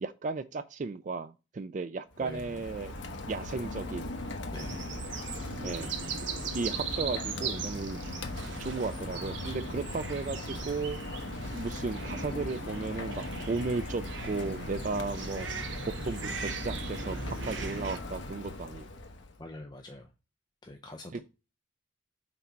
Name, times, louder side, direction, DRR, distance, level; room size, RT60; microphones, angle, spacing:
voice 1, 0.0-2.9 3.3-4.2 5.6-5.9 6.5-8.0 8.6-11.0 11.5-15.5 16.1-19.0 21.1-21.2, right 3 dB, 40° right, 0.3 m, -35 dB
Rain, 2.1-19.4, left 2 dB, 70° left, 1.0 m, -39 dB
voice 2, 2.2-2.6 4.5-5.0 5.3-5.4 19.4-20.1 20.6-21.2, left 1 dB, 20° left, 0.5 m, -45 dB
sound 1, 4.5-18.0, right 5 dB, 65° right, 0.8 m, -39 dB
5.9 x 4.1 x 4.4 m
head